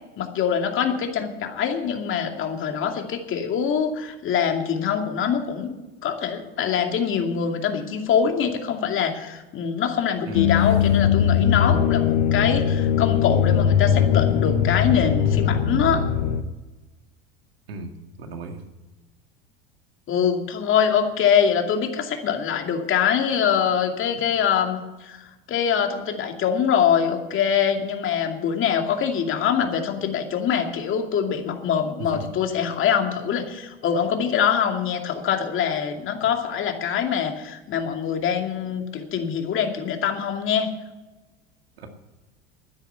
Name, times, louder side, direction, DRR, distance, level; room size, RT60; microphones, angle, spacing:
voice 1, 0.2-5.7 6.0-16.0 20.1-40.7, left 7 dB, 45° left, 4 dB, 2.5 m, -24 dB
sound 1, 10.3-16.4, left 8 dB, 75° left, 1.0 m, -20 dB
voice 2, 10.3-10.6 17.7-18.6 32.1-32.2 41.8-41.9, right 2 dB, 85° right, 5 dB, 2.1 m, -35 dB
12.5 x 10.0 x 8.2 m, 1.1 s
hypercardioid pair, 85°, 29 cm